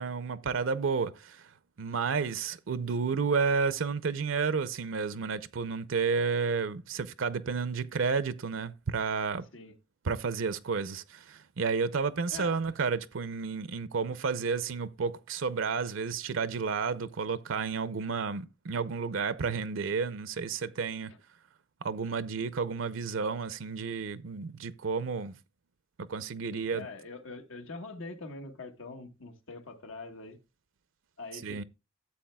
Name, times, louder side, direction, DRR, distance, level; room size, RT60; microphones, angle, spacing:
voice 1, 0.0-1.5 1.8-9.4 10.0-21.1 21.8-25.4 26.0-26.9 31.4-31.6, right 5 dB, 75° right, 0.6 m, -31 dB
voice 2, 26.5-30.4 31.2-31.6, left 3 dB, 85° left, 1.4 m, -44 dB
13.0 x 7.9 x 2.2 m
head